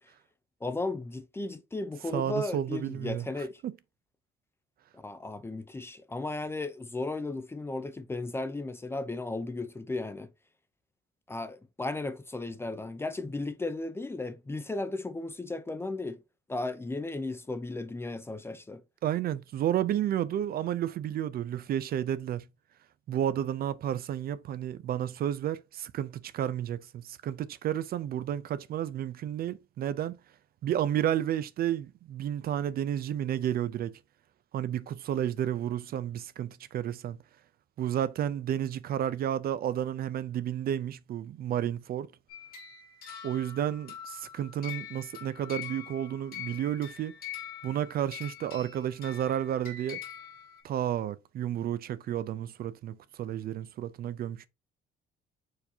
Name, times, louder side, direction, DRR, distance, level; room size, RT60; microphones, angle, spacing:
voice 1, 0.6-3.6 4.9-10.3 11.3-16.2 16.5-18.8, left 2 dB, 10° left, 0.4 m, -35 dB
voice 2, 2.1-3.3 3.6-3.7 19.0-22.4 23.1-30.2 30.6-33.9 34.5-37.2 37.8-42.1 43.2-47.1 47.6-50.0 50.6-54.5, right 10 dB, 50° right, 0.4 m, -31 dB
sound 1, 42.3-50.6, left 10 dB, 50° left, 1.8 m, -44 dB
4.6 x 2.7 x 4.2 m
cardioid pair, 155°, 20 cm